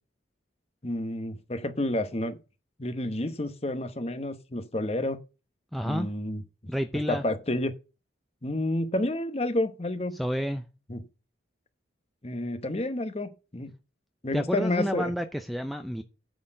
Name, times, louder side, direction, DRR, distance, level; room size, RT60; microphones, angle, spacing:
voice 1, 0.8-2.4 2.8-5.2 5.8-6.4 7.1-7.7 8.4-10.2 10.9-11.1 12.2-13.7 14.2-15.1, left 1 dB, 30° left, 0.9 m, -30 dB
voice 2, 5.7-6.1 6.7-7.2 10.2-10.6 14.3-16.0, equal, ahead, 0.5 m, -30 dB
9.2 x 4.4 x 7.5 m
head